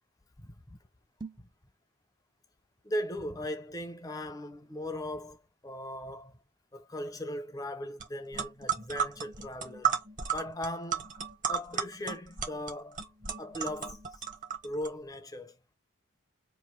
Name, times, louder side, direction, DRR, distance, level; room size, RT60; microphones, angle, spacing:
voice 1, 0.4-0.8 2.8-6.4 6.7-10.0 10.3-11.1 11.5-13.0 13.4-14.2 14.6-15.6, left 1 dB, 15° left, 0.6 m, -38 dB
sound 1, 1.1-1.6, right 4 dB, 20° right, 0.4 m, -44 dB
sound 2, 8.0-8.1 8.3-14.9, right 8 dB, 40° right, 1.0 m, -33 dB
3.1 x 2.6 x 4.3 m
head